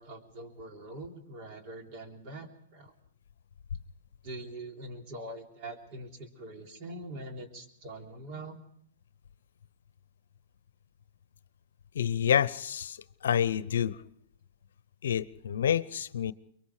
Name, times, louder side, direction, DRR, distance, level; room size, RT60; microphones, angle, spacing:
voice 1, 0.0-2.9 4.2-8.6, right 1 dB, 40° right, 3 dB, 3.4 m, -43 dB
voice 2, 11.9-13.0 13.2-14.0 15.0-16.3, left 9 dB, 75° left, 17 dB, 0.7 m, -28 dB
24.0 x 23.0 x 4.9 m, 0.68 s
hypercardioid pair, 120°, 0 cm